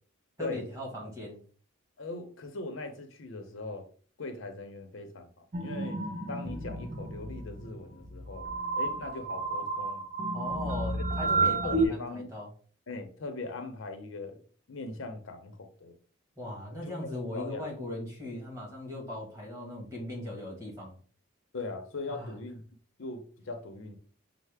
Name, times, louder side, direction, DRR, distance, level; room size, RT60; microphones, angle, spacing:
voice 1, 0.4-1.4 10.3-12.5 16.4-21.0 22.1-22.3, left 1 dB, 15° right, 1.3 m, -39 dB
voice 2, 2.0-3.9 4.2-6.0 6.3-8.5 8.7-10.0 10.9-12.3 12.9-14.4 14.7-15.9 16.8-17.6 21.5-22.6 23.0-24.0, left 3 dB, 65° left, 0.6 m, -40 dB
sound 1, 5.5-11.9, right 3 dB, 35° right, 0.5 m, -31 dB
5.5 x 2.0 x 3.3 m
head